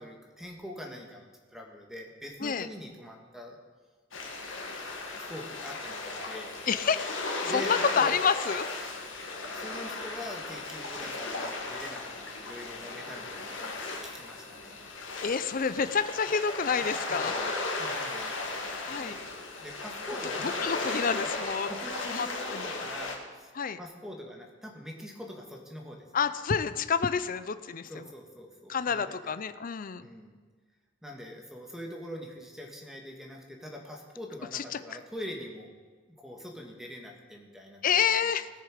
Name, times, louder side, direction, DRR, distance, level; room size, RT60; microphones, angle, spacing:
voice 1, 0.0-3.6 5.2-6.5 7.4-8.2 9.6-14.9 17.1-18.4 18.8-19.3 19.6-21.3 21.7-23.5 23.8-26.1 27.9-29.4 30.0-30.4 31.0-35.7 36.2-38.3, left 1 dB, ahead, 1 dB, 1.7 m, -43 dB
sound 1, 4.1-23.1, left 3 dB, 75° left, 1.8 m, -36 dB
voice 2, 6.7-7.2 7.4-9.2 15.2-17.3 18.8-19.2 20.4-21.7 22.1-22.7 23.5-23.8 26.1-28.1 28.7-30.1 34.5-34.8 37.8-38.5, left 6 dB, 45° left, 12 dB, 0.5 m, -29 dB
18.5 x 6.7 x 5.0 m, 1.5 s
head